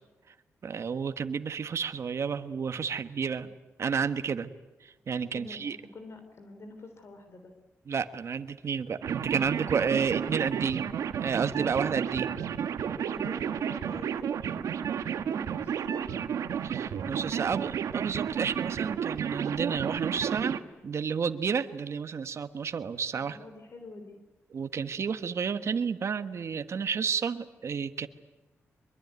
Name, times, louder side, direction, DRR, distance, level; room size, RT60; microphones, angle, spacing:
voice 1, 0.6-3.5 3.8-4.5 4.8-5.8 7.9-10.8 11.2-12.3 16.6-20.6 20.8-23.4 24.5-28.1, right 6 dB, 60° right, 10 dB, 1.4 m, -31 dB
voice 2, 5.3-7.5 11.6-11.7 13.0-16.2 23.2-24.2, left 2 dB, 55° left, 6 dB, 3.5 m, -47 dB
sound 1, 9.0-20.6, right 8 dB, 85° right, 1.4 m, -32 dB
24.0 x 23.0 x 9.5 m, 1.1 s
cardioid pair, 75°, 5 cm